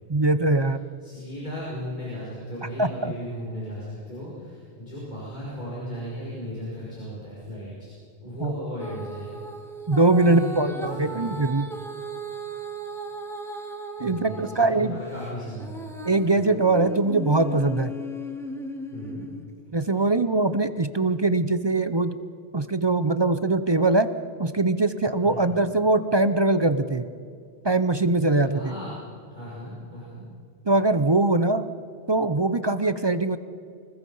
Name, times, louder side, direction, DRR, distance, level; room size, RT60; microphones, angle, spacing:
voice 1, 0.1-0.9 2.8-3.1 8.4-8.5 9.9-11.6 14.0-15.0 16.0-17.9 19.7-22.2 22.5-24.1 24.4-27.1 27.6-28.7 30.7-31.6 32.1-33.4, right 2 dB, 30° right, 12 dB, 0.6 m, -22 dB
voice 2, 1.0-7.9 8.2-9.4 10.2-11.4 14.0-15.8 16.3-16.6 18.9-19.3 25.2-25.5 28.4-29.0 29.3-30.2, equal, 40° left, -7 dB, 5.5 m, -36 dB
Female singing, 8.8-14.7 15.1-19.4 20.0-20.1, right 1 dB, ahead, 2.0 m, -37 dB
25.0 x 20.5 x 5.5 m, 2.3 s
omnidirectional pair, 1.2 m